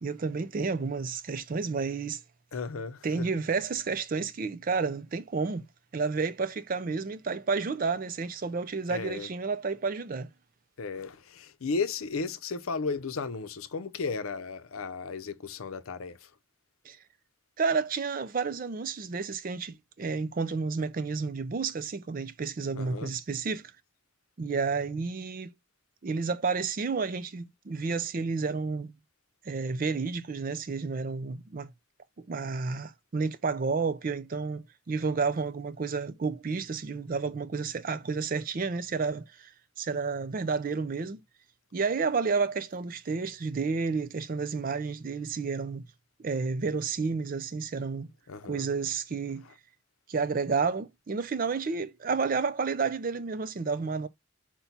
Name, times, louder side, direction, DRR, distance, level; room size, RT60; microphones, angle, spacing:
voice 1, 0.0-2.2 3.0-5.7 5.9-10.3 16.8-17.0 17.6-23.7 24.4-25.5 26.0-28.9 29.4-31.7 32.2-39.5 39.8-41.2 41.7-45.8 46.2-48.1 48.5-49.5 50.1-54.1, right 4 dB, 40° right, 0.4 m, -31 dB
voice 2, 2.5-3.4 8.9-9.3 10.8-16.3 22.7-23.1 48.3-48.7 49.4-49.6, left 4 dB, 85° left, 0.6 m, -35 dB
5.8 x 2.2 x 4.0 m
head